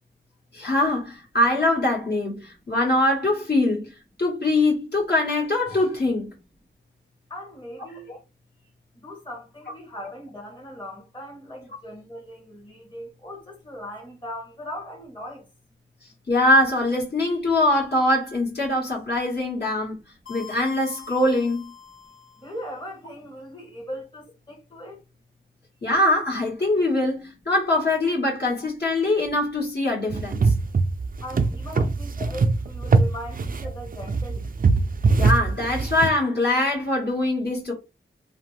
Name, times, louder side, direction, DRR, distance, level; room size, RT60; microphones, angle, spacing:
voice 1, 0.5-3.9 4.2-6.3 8.1-8.2 16.3-20.0 20.3-21.7 25.8-30.5 32.2-32.3 35.2-37.7, left 1 dB, 50° left, 1.6 m, -23 dB
voice 2, 7.3-8.1 9.0-15.4 22.4-25.0 31.2-34.5, equal, 20° left, 1.2 m, -39 dB
sound 1, 20.3-22.6, left 6 dB, 80° left, 1.2 m, -42 dB
sound 2, 30.1-36.1, right 3 dB, 45° right, 0.4 m, -22 dB
2.8 x 2.1 x 3.2 m
cardioid pair, 55°, 21 cm